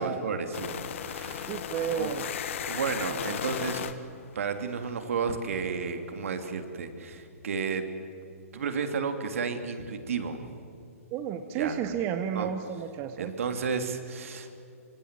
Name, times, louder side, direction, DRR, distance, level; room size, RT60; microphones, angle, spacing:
voice 1, 0.0-1.6 1.9-2.1 2.6-3.8 4.3-7.8 8.5-10.5 11.6-11.8 12.3-12.5 13.2-14.5, right 5 dB, 60° right, 7 dB, 3.0 m, -32 dB
sound 1, 0.5-5.4, left 9 dB, 55° left, 1.7 m, -36 dB
voice 2, 1.5-2.3 11.1-13.3, right 8 dB, 30° right, 8 dB, 1.4 m, -32 dB
26.0 x 25.5 x 7.6 m, 2.6 s
figure-of-eight pair, 130°, 8 cm